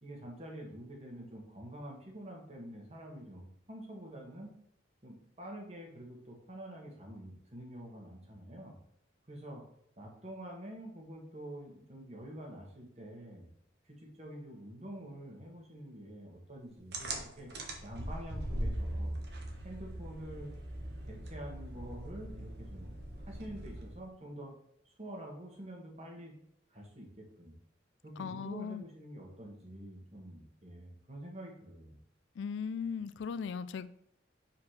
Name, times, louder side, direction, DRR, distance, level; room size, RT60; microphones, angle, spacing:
voice 1, 0.0-4.5 5.0-8.7 9.3-9.6 10.0-13.5 14.0-17.5 17.8-19.2 19.6-20.5 21.1-24.5 24.8-26.3 26.7-27.5 28.0-32.0, right 1 dB, 35° right, 0 dB, 1.6 m, -47 dB
sound 1, 16.9-24.1, right 1 dB, 60° right, 1.1 m, -40 dB
voice 2, 28.2-28.8 32.4-33.9, left 6 dB, 75° left, 14 dB, 0.3 m, -38 dB
4.9 x 4.3 x 5.8 m, 0.74 s
head